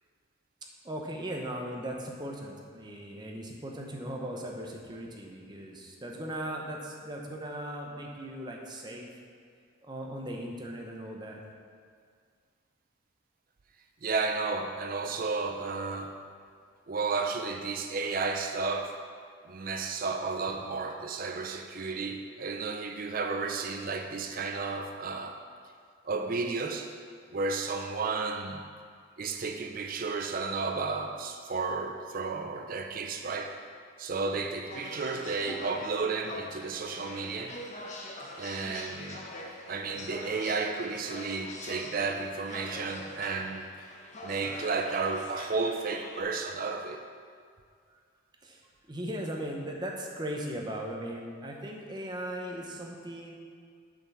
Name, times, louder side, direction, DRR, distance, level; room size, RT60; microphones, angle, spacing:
voice 1, 0.8-9.1 9.8-11.4 47.9-48.0 48.4-48.6 48.9-53.3, right 1 dB, 20° right, 0 dB, 0.8 m, -38 dB
voice 2, 14.0-16.1 16.9-19.0 19.5-25.4 26.0-26.9 27.3-28.6 29.2-33.5 34.0-37.6 38.4-39.2 39.7-43.7 44.2-47.0, right 4 dB, 40° right, 5 dB, 0.4 m, -32 dB
sound 1, 34.7-46.2, left 1 dB, 35° left, 0.8 m, -43 dB
7.5 x 5.7 x 6.2 m, 2.1 s
head